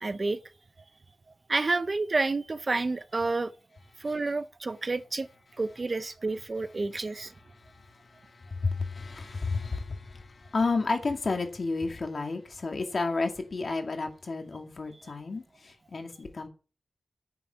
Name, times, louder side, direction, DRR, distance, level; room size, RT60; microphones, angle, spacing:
voice 1, 0.0-0.4 1.5-3.5 4.0-5.3 5.6-7.3, right 3 dB, 35° right, 0.6 m, -29 dB
voice 2, 7.5-16.5, left 3 dB, 45° left, 2.2 m, -32 dB
10.0 x 6.9 x 8.5 m
wide cardioid pair, 155°, 0 cm